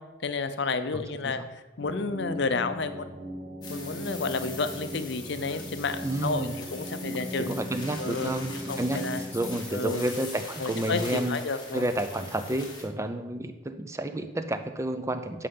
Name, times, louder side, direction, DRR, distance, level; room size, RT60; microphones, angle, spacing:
voice 1, 0.2-1.4 1.8-3.1 3.7-7.5 8.0-8.4 8.7-9.2 9.7-10.0 10.6-11.8, left 4 dB, 55° left, 10 dB, 0.6 m, -31 dB
voice 2, 0.9-1.5 6.0-6.6 7.0-7.1 7.4-11.4 11.7-15.5, right 1 dB, 15° right, 9 dB, 0.4 m, -31 dB
sound 1, 1.8-9.6, equal, 35° right, 1.4 m, -38 dB
sound 2, 3.6-12.8, left 3 dB, 20° left, 1.7 m, -42 dB
10.0 x 5.6 x 5.5 m, 1.1 s
head